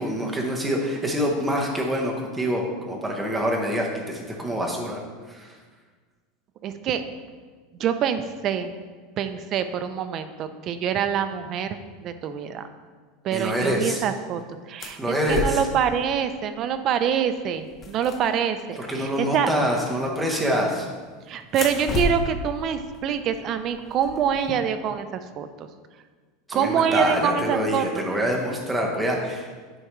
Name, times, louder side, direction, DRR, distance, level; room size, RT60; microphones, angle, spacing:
voice 1, 0.0-5.0 5.3-5.5 13.3-14.0 15.0-15.6 18.8-20.9 26.5-29.5, equal, 5° right, -1 dB, 0.8 m, -25 dB
voice 2, 6.6-7.0 7.8-8.7 9.2-12.6 13.2-14.4 14.7-19.5 21.3-25.5 26.5-28.0, right 8 dB, 30° right, 9 dB, 0.4 m, -25 dB
sound 1, 14.8-15.8 16.9-17.1 17.4-18.8 20.3-20.9 21.4-24.5, left 2 dB, 20° left, 0.6 m, -32 dB
9.8 x 4.7 x 3.1 m, 1.5 s
supercardioid pair, 175°, 0 cm